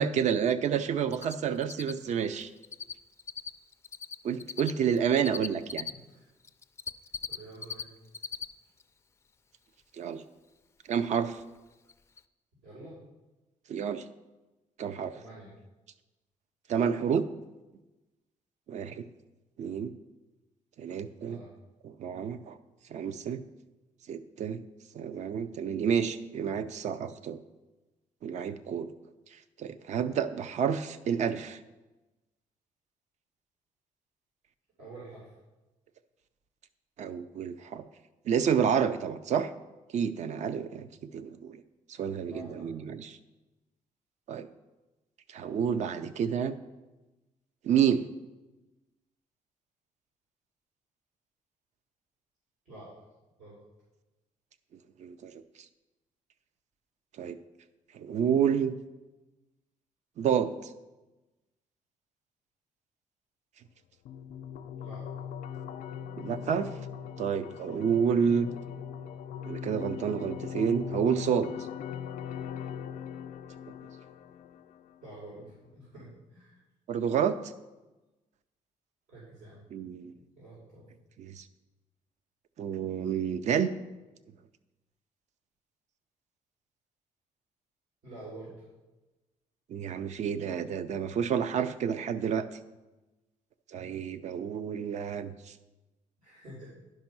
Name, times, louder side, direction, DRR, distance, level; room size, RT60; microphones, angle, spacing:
voice 1, 0.0-2.5 4.2-5.9 10.0-10.2 10.9-11.4 13.7-14.0 14.8-15.1 16.7-17.3 18.7-19.0 19.6-19.9 20.8-21.4 21.8-22.6 22.9-23.4 24.1-24.6 24.9-27.4 28.2-28.9 29.6-31.6 37.0-37.8 38.3-39.5 39.9-40.9 41.1-41.6 42.0-43.2 44.3-44.5 45.3-46.6 47.6-48.0 55.0-55.3 57.2-57.4 57.9-58.7 60.2-60.5 66.2-66.7 67.2-68.5 69.5-71.5 76.9-77.4 79.7-80.1 81.2-81.4 82.6-83.7 89.7-92.5 93.7-95.5, right 7 dB, 60° right, 12 dB, 0.5 m, -29 dB
Cricket, 1.1-1.3 1.6-5.9 6.4-7.8 8.1-8.4 8.8-8.9 11.4-11.5 11.9-12.0 12.2-12.3, left 6 dB, 20° left, 0.3 m, -37 dB
voice 2, 7.3-7.9 12.6-13.0 15.1-15.5 21.2-21.5 34.8-35.3 42.1-42.7 45.8-46.4 52.7-52.9 53.4-53.6 64.8-65.0 70.6-70.8 75.0-76.6 79.1-79.6 80.4-80.9 88.0-88.6 96.2-96.7, right 2 dB, 85° right, -8 dB, 3.8 m, -48 dB
sound 1, 64.1-75.1, left 8 dB, 85° left, 0.4 m, -40 dB
11.0 x 5.4 x 6.0 m, 1.1 s
cardioid pair, 140°, 13 cm